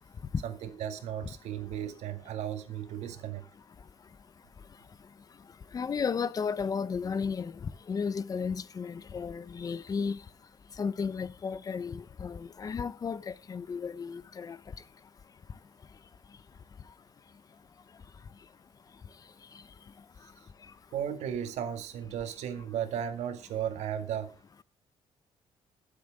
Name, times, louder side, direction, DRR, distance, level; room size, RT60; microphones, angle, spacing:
voice 1, 0.4-3.4 20.9-24.3, right 9 dB, 85° right, 2.0 m, -35 dB
voice 2, 5.7-10.2 10.8-14.6, left 6 dB, 35° left, 0.8 m, -33 dB
21.5 x 7.8 x 3.6 m
cardioid pair, 135°, 11 cm